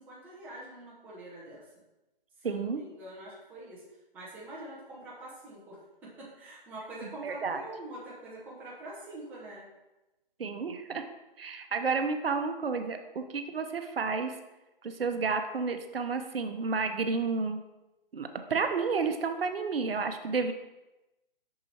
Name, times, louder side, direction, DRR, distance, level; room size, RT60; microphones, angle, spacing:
voice 1, 0.0-1.7 2.4-3.8 4.1-9.7, right 1 dB, 5° right, -6 dB, 0.7 m, -45 dB
voice 2, 2.4-2.8 7.0-7.6 10.4-11.0 11.4-14.4 14.8-17.6 18.1-20.5, right 4 dB, 80° right, 7 dB, 0.7 m, -31 dB
6.6 x 5.6 x 2.8 m, 1.0 s
hypercardioid pair, 150°, 29 cm